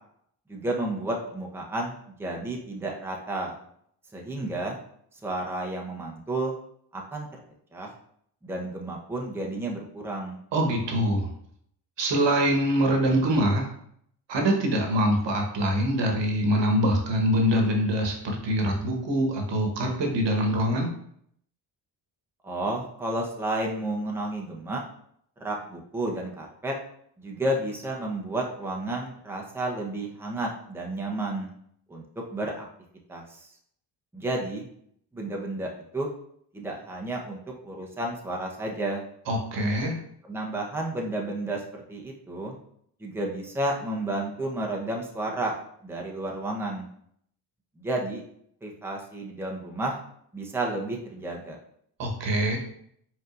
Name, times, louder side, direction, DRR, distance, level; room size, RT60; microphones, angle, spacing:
voice 1, 0.5-3.6 4.1-4.8 5.2-6.5 6.9-7.4 7.7-7.9 8.4-10.4 22.4-24.8 25.4-26.7 27.2-31.5 31.9-32.0 32.3-32.6 33.1-33.5 34.1-34.7 35.1-36.1 36.5-39.0 40.3-41.6 41.9-42.6 43.0-45.5 45.8-46.8 47.8-48.2 48.6-50.0 50.3-51.6, right 1 dB, 5° right, -1 dB, 0.9 m, -31 dB
voice 2, 10.5-11.3 12.0-13.7 14.3-20.9 39.3-39.9 52.0-52.6, right 1 dB, 60° right, 2 dB, 1.3 m, -24 dB
5.1 x 3.7 x 2.6 m, 0.68 s
supercardioid pair, 60°, 49 cm